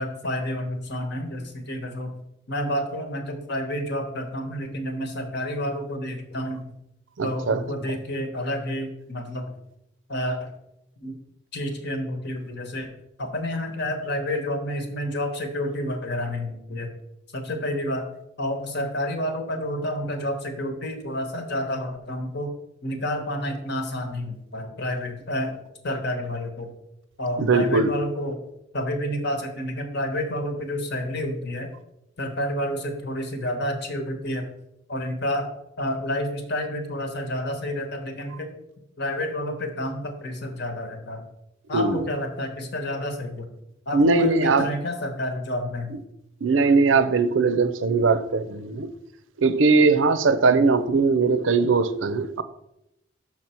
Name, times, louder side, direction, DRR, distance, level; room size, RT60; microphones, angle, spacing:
voice 1, 0.0-2.1 2.5-6.6 7.2-9.5 10.1-10.5 11.0-11.1 11.5-12.9 13.2-16.9 17.3-18.0 18.4-22.5 22.8-26.7 27.2-28.4 28.7-31.7 32.2-34.5 34.9-35.5 35.8-38.5 39.0-41.2 41.7-43.5 43.9-46.0 50.5-50.7, left 1 dB, 60° left, 1.2 m, -29 dB
voice 2, 7.2-7.6 27.4-27.9 41.7-42.0 43.9-44.7 46.4-48.9 49.4-52.4, right 4 dB, 80° right, 0.5 m, -20 dB
6.1 x 6.0 x 4.4 m
head